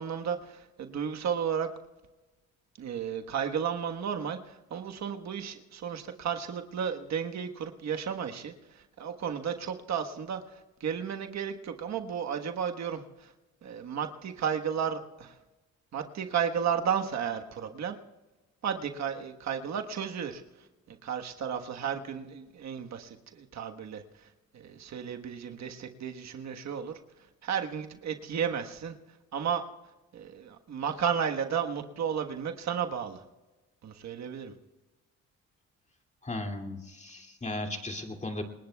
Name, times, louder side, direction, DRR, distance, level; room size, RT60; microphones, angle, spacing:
voice 1, 0.0-1.7 2.8-13.3 13.6-15.4 15.9-18.0 18.6-20.4 20.9-24.3 24.5-27.0 27.4-28.9 29.3-29.6 30.1-33.2 33.8-34.5, right 7 dB, 65° right, 5 dB, 1.4 m, -33 dB
voice 2, 36.2-38.4, left 2 dB, 25° left, 3 dB, 2.5 m, -36 dB
28.0 x 20.0 x 2.3 m, 1.1 s
cardioid pair, 90°, 30 cm